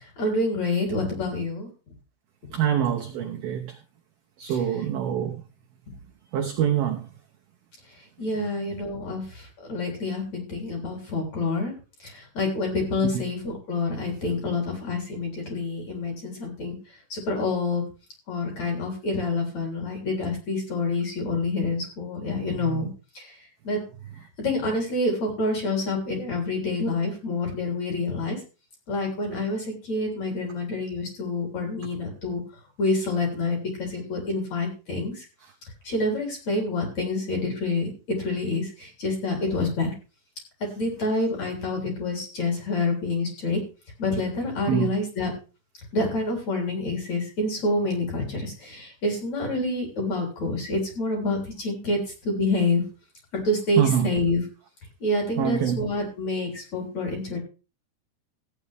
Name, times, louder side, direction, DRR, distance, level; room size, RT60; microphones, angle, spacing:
voice 1, 0.2-1.7 4.5-4.6 8.2-9.4 9.7-11.7 12.0-16.8 17.1-17.8 18.3-22.9 23.1-23.2 23.6-23.8 24.4-28.4 28.9-32.4 32.8-35.1 35.8-39.9 40.8-43.6 44.0-45.3 45.9-52.0 52.2-52.8 53.3-54.4 55.0-57.4, left 2 dB, 35° left, 1 dB, 4.3 m, -27 dB
voice 2, 2.5-3.7 4.4-5.4 6.3-7.0 13.2-13.3 22.7-22.9 44.7-44.9 53.8-54.1 55.4-55.8, right 9 dB, 75° right, 1 dB, 2.3 m, -25 dB
15.5 x 9.5 x 3.5 m, 0.32 s
omnidirectional pair, 5.7 m